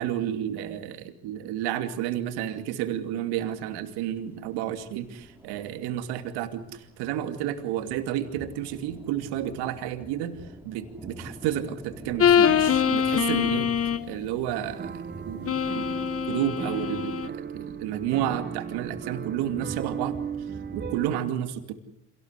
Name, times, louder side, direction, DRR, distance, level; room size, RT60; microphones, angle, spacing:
voice 1, 0.0-10.4 10.6-13.7 14.1-16.0 16.3-20.2 20.7-21.7, right 11 dB, 75° right, 8 dB, 2.8 m, -31 dB
sound 1, 2.9-20.9, right 2 dB, 5° right, 4.7 m, -47 dB
sound 2, 12.2-14.1 15.5-17.3, left 8 dB, 35° left, 1.4 m, -23 dB
sound 3, 14.6-21.2, right 7 dB, 25° right, 0.9 m, -36 dB
27.0 x 18.0 x 8.3 m, 0.79 s
supercardioid pair, 80°, 40 cm